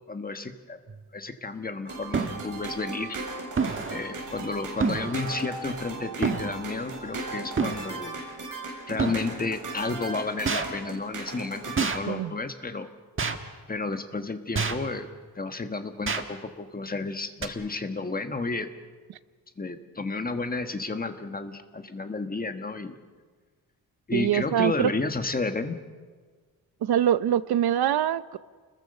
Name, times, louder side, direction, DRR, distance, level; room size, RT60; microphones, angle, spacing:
voice 1, 0.1-0.8 1.1-3.2 3.9-8.2 8.9-12.9 13.7-15.1 15.3-18.7 19.6-22.9 24.1-25.8, left 3 dB, 25° left, 7 dB, 1.5 m, -32 dB
sound 1, 0.9-1.0 2.1-2.4 3.6-4.1 4.8-5.2 6.2-6.5 7.6-7.8 9.0-9.2 10.5-10.7 11.8-12.0 13.2-13.4 14.5-14.9 16.1-16.2 17.4-17.5, right 5 dB, 35° right, 1.6 m, -27 dB
sound 2, 1.9-11.9, right 2 dB, 55° right, 7.1 m, -37 dB
voice 2, 24.1-24.9 26.8-28.4, right 10 dB, 85° right, 15 dB, 0.8 m, -24 dB
29.5 x 21.5 x 6.6 m, 1.5 s
wide cardioid pair, 145°, 37 cm